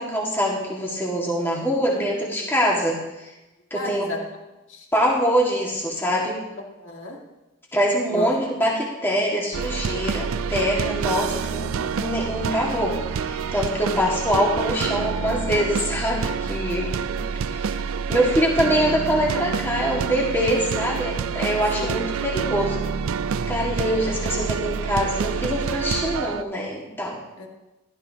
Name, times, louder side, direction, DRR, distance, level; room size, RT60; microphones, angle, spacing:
voice 1, 0.0-3.3 3.7-4.1 4.9-6.4 7.7-17.2 17.5-17.7 18.1-22.8 23.5-27.2, equal, 10° left, -3 dB, 1.8 m, -24 dB
voice 2, 2.0-2.5 3.7-4.2 4.7-4.9 6.8-7.2 8.1-8.3 13.9-14.0 16.7-16.8 20.5-20.8 21.8-22.1 27.4-27.5, left 1 dB, 65° left, 0 dB, 1.9 m, -34 dB
sound 1, 9.5-26.4, right 6 dB, 80° right, 0.4 m, -27 dB
15.0 x 12.0 x 2.8 m, 1.0 s
head